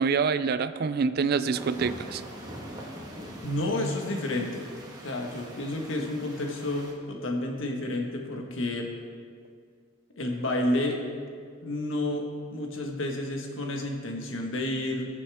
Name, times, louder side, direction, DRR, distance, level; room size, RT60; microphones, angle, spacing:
voice 1, 0.0-2.2, right 5 dB, 50° right, 13 dB, 0.4 m, -26 dB
sound 1, 1.5-6.9, equal, 20° right, 1.5 m, -43 dB
voice 2, 3.4-4.6 5.0-8.9 10.2-11.0 11.6-15.1, left 1 dB, 65° left, 1 dB, 1.5 m, -30 dB
20.5 x 7.0 x 3.5 m, 2.1 s
head